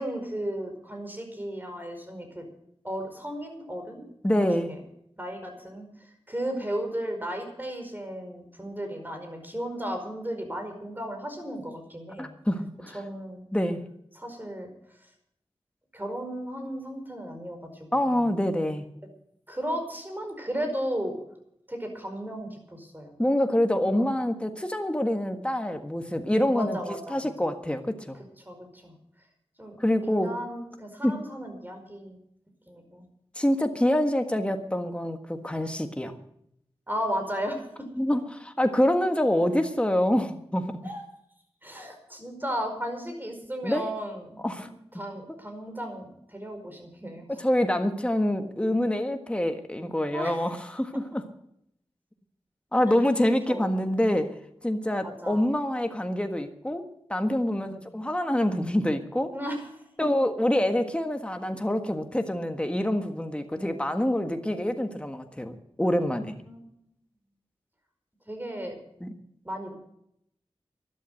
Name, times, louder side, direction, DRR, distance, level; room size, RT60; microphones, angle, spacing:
voice 1, 0.0-2.4 2.8-4.1 4.6-4.8 5.2-12.3 12.9-13.4 14.1-14.7 15.9-18.2 19.5-21.1 21.7-23.2 23.9-24.0 26.5-27.5 28.1-28.9 29.6-29.8 30.0-32.2 32.7-33.0 36.9-37.6 40.8-41.0 41.6-47.4 50.1-50.5 52.9-53.0 53.5-53.9 55.0-55.5 57.6-57.8 59.3-59.8 63.5-63.8 66.4-66.7 68.3-68.8 69.4-69.7, equal, 20° right, 5 dB, 5.0 m, -35 dB
voice 2, 4.2-4.7 12.2-13.0 13.5-13.8 17.9-18.8 23.2-26.8 27.1-28.2 29.8-30.3 31.0-31.2 33.3-36.2 38.0-40.7 43.6-43.8 44.4-44.7 47.4-51.2 52.7-54.3 54.6-56.8 57.1-59.3 60.0-66.4 69.0-69.1, left 1 dB, 10° left, 6 dB, 1.5 m, -26 dB
12.5 x 12.0 x 7.7 m, 0.74 s
wide cardioid pair, 50°, 10 cm